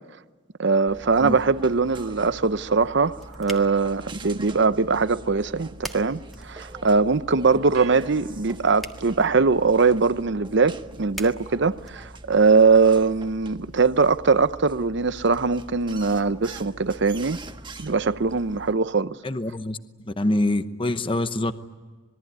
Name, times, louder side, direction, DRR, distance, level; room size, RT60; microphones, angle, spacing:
voice 1, 0.6-17.4 17.8-19.2, right 4 dB, 60° right, 0.8 m, -21 dB
sound 1, 0.9-18.7, right 2 dB, 25° right, 1.4 m, -43 dB
Flashlight Switch, 2.7-12.6, equal, ahead, 1.6 m, -46 dB
sound 2, 7.7-9.1, right 6 dB, 85° right, 3.1 m, -44 dB
voice 2, 19.2-19.8 20.0-21.5, left 1 dB, 25° left, 0.9 m, -25 dB
26.5 x 21.5 x 9.6 m
head